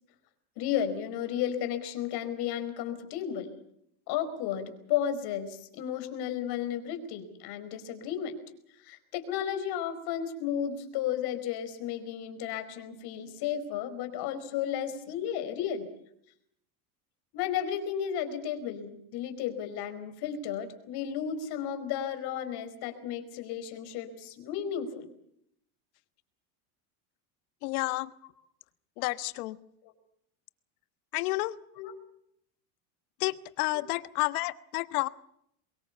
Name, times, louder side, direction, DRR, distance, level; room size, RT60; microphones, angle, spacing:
voice 1, 0.6-3.6 4.1-8.4 8.8-15.9 17.3-25.1 29.8-29.9 31.8-31.9 33.7-33.8, left 9 dB, 60° left, 9 dB, 4.9 m, -33 dB
voice 2, 27.6-28.1 29.0-29.6 31.1-31.6 33.2-35.1, left 20 dB, 75° left, 13 dB, 1.4 m, -30 dB
23.5 x 22.0 x 7.0 m, 0.73 s
supercardioid pair, 115°, 44 cm